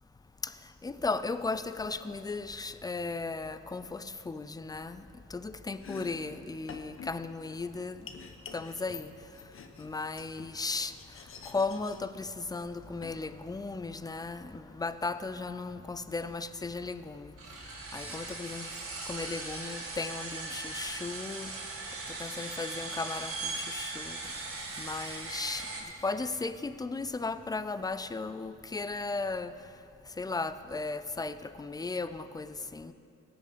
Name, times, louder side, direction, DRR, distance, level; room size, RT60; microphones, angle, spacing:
voice 1, 0.8-5.0 5.3-8.0 8.5-9.1 9.8-10.9 11.5-17.3 17.9-18.7 19.1-21.5 22.2-24.2 24.8-25.7 26.0-29.5 30.2-32.9, left 3 dB, 15° left, 13 dB, 0.4 m, -36 dB
Domestic sounds home sounds, 5.7-13.9, left 5 dB, 45° left, 1.0 m, -49 dB
sound 1, 17.4-25.8, right 3 dB, 45° right, 2.0 m, -39 dB
17.0 x 6.4 x 5.1 m, 2.7 s
cardioid pair, 90°, 30 cm